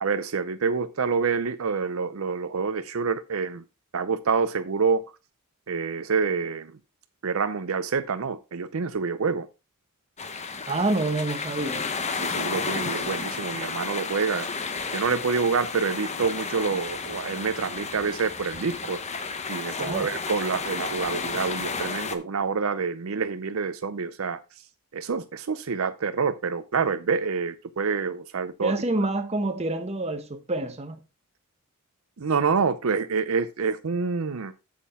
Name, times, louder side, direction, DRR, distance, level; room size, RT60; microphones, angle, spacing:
voice 1, 0.0-3.6 3.9-5.0 5.7-6.8 7.2-9.5 12.2-14.5 14.9-24.4 24.9-28.7 32.2-34.5, right 5 dB, 70° right, 0.6 m, -27 dB
sound 1, 10.2-22.2, left 4 dB, 30° left, 0.9 m, -32 dB
voice 2, 10.7-11.9 19.8-20.1 28.6-31.0, right 2 dB, 30° right, 1.1 m, -27 dB
8.3 x 7.5 x 3.6 m
head